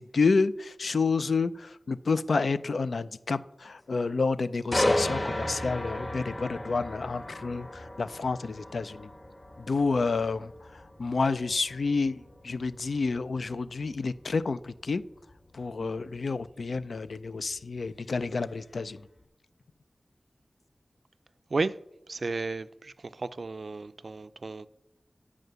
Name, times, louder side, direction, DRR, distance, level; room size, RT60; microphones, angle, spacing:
voice 1, 0.0-9.1 9.6-15.0 15.5-19.0, left 4 dB, 85° left, 0.4 m, -29 dB
sound 1, 4.7-18.5 19.0-19.2, left 1 dB, 30° left, 1.2 m, -35 dB
voice 2, 22.1-24.7, right 3 dB, 65° right, 0.4 m, -33 dB
9.4 x 4.9 x 6.7 m
wide cardioid pair, 75°, 0 cm